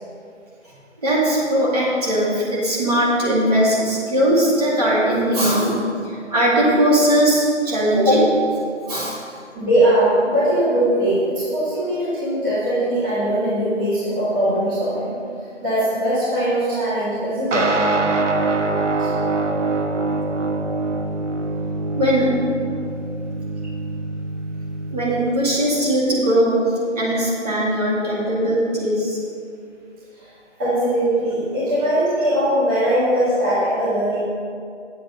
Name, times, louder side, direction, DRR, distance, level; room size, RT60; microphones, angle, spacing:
voice 1, 1.0-9.2 22.0-22.4 24.9-26.6 26.9-29.2, equal, 30° right, -6 dB, 2.3 m, -19 dB
voice 2, 9.5-15.2 15.6-17.7 19.0-19.1 30.2-30.3 30.6-34.2, right 1 dB, 15° right, -12 dB, 1.9 m, -20 dB
sound 1, 17.5-25.3, right 3 dB, 80° right, 1.2 m, -24 dB
9.2 x 7.6 x 5.4 m, 2.4 s
hypercardioid pair, 165°, 37 cm